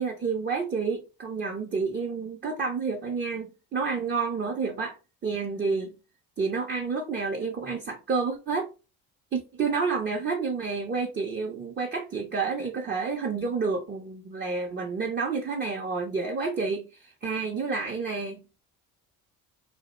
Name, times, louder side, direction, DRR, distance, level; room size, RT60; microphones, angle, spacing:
voice 1, 0.0-5.0 5.2-5.9 6.4-8.7 9.3-18.4, right 4 dB, 25° right, 0.5 m, -29 dB
2.2 x 2.0 x 2.9 m
supercardioid pair, 65°, 41 cm